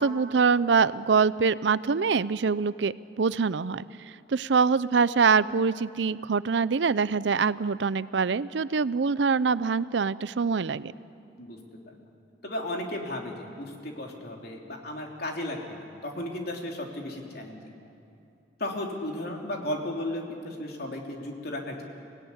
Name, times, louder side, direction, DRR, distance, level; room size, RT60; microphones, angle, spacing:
voice 1, 0.0-3.9 4.3-10.9, right 5 dB, 70° right, 17 dB, 0.5 m, -24 dB
voice 2, 12.4-17.7 18.6-21.8, left 1 dB, 60° left, 1 dB, 3.3 m, -35 dB
25.0 x 17.5 x 9.8 m, 2.7 s
head